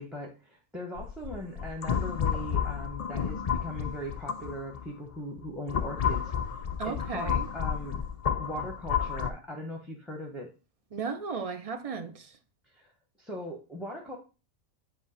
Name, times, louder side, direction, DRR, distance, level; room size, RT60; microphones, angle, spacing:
voice 1, 0.0-6.2 6.8-8.0 8.4-10.5 12.7-12.9 13.2-14.2, equal, ahead, 0.8 m, -39 dB
sound 1, 1.0-4.8 5.4-9.3, left 8 dB, 55° left, 0.4 m, -31 dB
voice 2, 6.8-7.5 10.9-12.3, right 5 dB, 45° right, 0.4 m, -35 dB
7.6 x 2.8 x 5.6 m
omnidirectional pair, 1.3 m